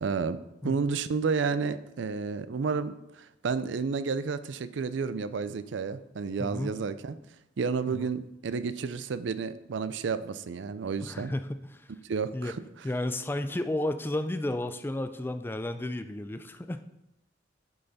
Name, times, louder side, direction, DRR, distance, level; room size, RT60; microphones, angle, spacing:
voice 1, 0.0-7.2 7.6-11.3 12.0-12.6, right 5 dB, 70° right, 14 dB, 0.4 m, -31 dB
voice 2, 6.4-6.8 7.9-8.1 11.0-11.9 12.3-12.5 12.8-16.9, left 1 dB, 10° left, 9 dB, 0.3 m, -32 dB
10.5 x 5.6 x 4.1 m, 0.90 s
head